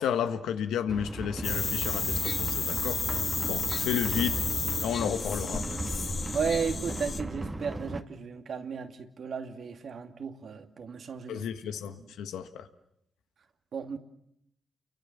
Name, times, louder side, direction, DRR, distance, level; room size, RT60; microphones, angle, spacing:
voice 1, 0.0-3.0 3.4-4.4 4.8-5.8 11.3-12.7, left 9 dB, 90° left, 1.6 m, -32 dB
sound 1, 0.9-8.0, right 2 dB, 25° right, 1.9 m, -36 dB
sound 2, 1.4-7.2, left 5 dB, 55° left, 2.0 m, -32 dB
voice 2, 6.3-11.5 11.7-12.1 13.7-14.0, right 6 dB, 70° right, 2.5 m, -34 dB
30.0 x 23.5 x 7.4 m
supercardioid pair, 50°, 0 cm